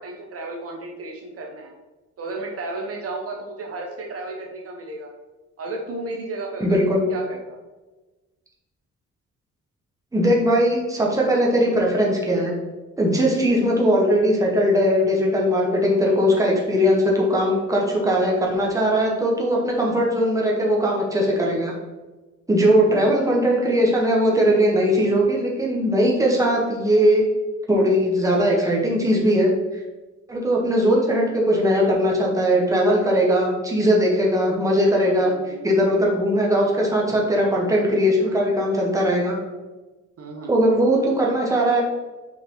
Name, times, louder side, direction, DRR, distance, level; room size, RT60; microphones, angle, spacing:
voice 1, 0.0-1.7 2.2-5.1 5.6-7.6 22.9-23.2 35.1-35.7 37.6-37.8 38.3-38.7 40.2-40.5, right 2 dB, 50° right, 0 dB, 0.9 m, -34 dB
voice 2, 6.6-7.1 10.1-12.5 13.0-21.7 22.5-27.3 27.7-29.5 30.3-39.3 40.5-41.8, equal, 10° right, -2 dB, 1.3 m, -19 dB
5.9 x 4.8 x 3.8 m, 1.2 s
cardioid pair, 155°, 31 cm